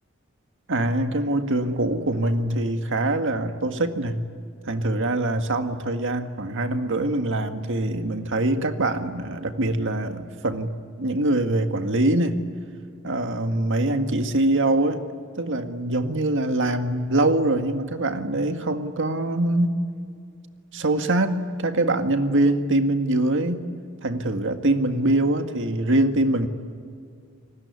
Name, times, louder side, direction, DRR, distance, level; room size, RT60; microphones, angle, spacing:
voice 1, 0.7-4.3 4.7-12.4 13.0-15.0 15.4-19.8 20.7-23.7 24.0-26.5, right 1 dB, 60° right, 7 dB, 1.9 m, -23 dB
28.5 x 20.0 x 9.7 m, 2.3 s
head